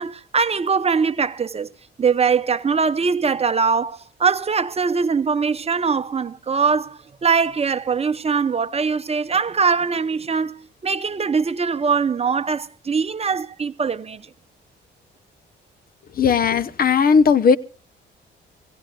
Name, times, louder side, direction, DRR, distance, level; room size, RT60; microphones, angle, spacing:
voice 1, 0.0-1.7 2.0-14.2, right 5 dB, 30° right, 0.9 m, -22 dB
voice 2, 16.2-17.6, left 6 dB, 50° left, 0.9 m, -16 dB
25.5 x 17.0 x 2.4 m
cardioid pair, 90°, 20 cm